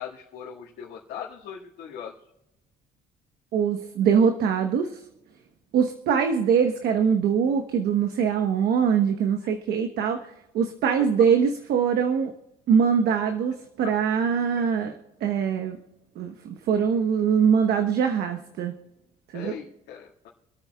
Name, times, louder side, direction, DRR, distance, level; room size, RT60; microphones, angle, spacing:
voice 1, 0.0-2.1 11.0-11.1 19.3-20.3, left 8 dB, 80° left, -5 dB, 2.0 m, -39 dB
voice 2, 3.5-5.0 5.7-10.2 10.5-12.3 12.7-14.9 15.2-15.8 16.2-18.7 19.3-19.6, right 7 dB, 70° right, 5 dB, 1.1 m, -23 dB
27.0 x 9.0 x 2.3 m, 0.93 s
cardioid pair, 110°, 17 cm